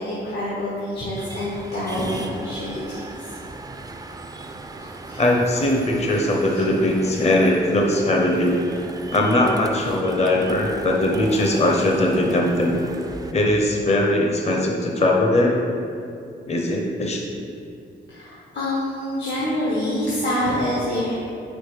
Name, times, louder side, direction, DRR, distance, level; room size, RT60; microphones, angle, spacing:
voice 1, 0.0-3.3 5.1-5.2 6.5-6.6 18.1-21.2, left 1 dB, 80° left, -8 dB, 1.3 m, -26 dB
sound 1, 1.2-13.3, right 2 dB, 20° right, 0.4 m, -38 dB
voice 2, 5.2-8.6 9.1-12.8 13.3-15.6 16.3-17.2, left 1 dB, 35° left, 0 dB, 0.7 m, -20 dB
5.3 x 4.1 x 4.9 m, 2.6 s
cardioid pair, 95°, 18 cm